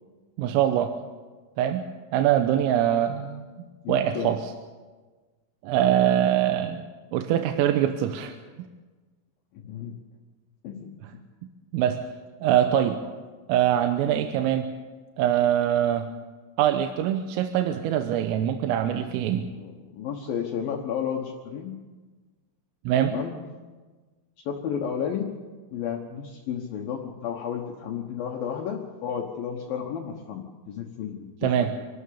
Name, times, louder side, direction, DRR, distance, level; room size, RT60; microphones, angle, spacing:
voice 1, 0.4-1.0 1.6-1.8 2.1-4.4 5.6-6.8 7.1-8.4 11.7-12.1 12.4-13.0 13.5-14.7 15.2-16.1 16.6-19.5 22.9-23.1 31.4-31.8, right 10 dB, 90° right, 7 dB, 3.6 m, -23 dB
voice 2, 3.8-4.3 9.5-9.9 10.6-11.0 19.6-21.7 23.1-23.4 24.5-25.3 25.7-31.7, left 8 dB, 70° left, 1 dB, 2.3 m, -32 dB
26.5 x 12.5 x 8.5 m, 1.3 s
omnidirectional pair, 5.8 m